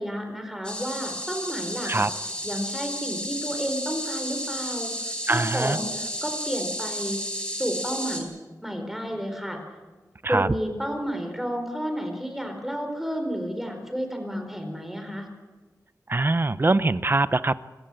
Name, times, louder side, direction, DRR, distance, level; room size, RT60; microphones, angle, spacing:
voice 1, 0.0-2.1 2.4-4.9 5.3-7.2 7.6-8.3 8.6-9.6 10.3-15.3, equal, 5° right, 4 dB, 4.3 m, -31 dB
sound 1, 0.6-8.2, equal, 15° left, 4.7 m, -32 dB
voice 2, 5.3-5.8 10.2-10.5 16.1-17.6, right 2 dB, 35° right, 15 dB, 0.7 m, -23 dB
26.0 x 15.0 x 7.8 m, 1.3 s
wide cardioid pair, 95°, 7 cm